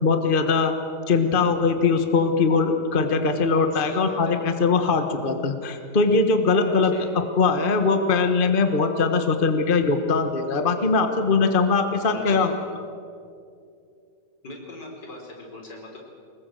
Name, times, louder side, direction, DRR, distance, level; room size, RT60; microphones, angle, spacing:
voice 1, 0.0-0.7 1.1-12.5, left 4 dB, 30° left, 7 dB, 1.4 m, -21 dB
voice 2, 3.7-4.4 6.5-7.1 12.1-12.6 14.4-16.0, left 2 dB, 80° left, 0 dB, 5.3 m, -41 dB
25.0 x 21.0 x 7.8 m, 2.5 s
omnidirectional pair, 1.8 m